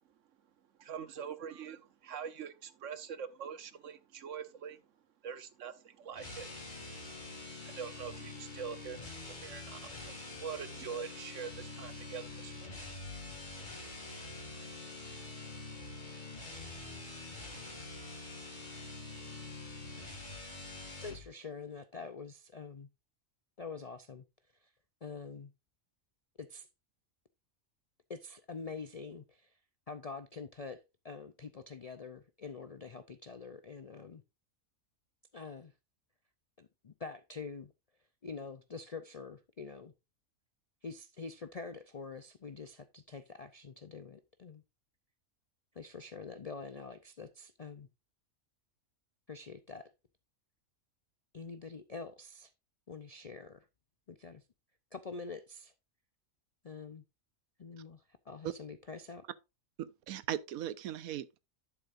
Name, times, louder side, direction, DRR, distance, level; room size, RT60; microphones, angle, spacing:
voice 1, 0.8-4.8 5.2-9.0 9.3-12.8, right 7 dB, 65° right, 1.2 m, -44 dB
sound 1, 6.1-21.3, left 2 dB, 35° left, 2.3 m, -45 dB
voice 2, 21.0-22.9 23.6-24.2 24.6-24.7 25.0-25.5 26.4-26.7 28.1-29.5 29.9-34.2 35.3-35.7 36.6-37.7 38.2-39.9 40.8-44.6 45.7-47.9 49.3-49.9 51.3-52.5 52.9-53.7 54.1-54.4 54.9-55.7 56.6-57.0 57.6-59.3, left 4 dB, 55° left, 0.4 m, -46 dB
voice 3, 59.8-61.4, right 11 dB, 85° right, 1.1 m, -38 dB
11.5 x 7.1 x 2.5 m
omnidirectional pair, 1.4 m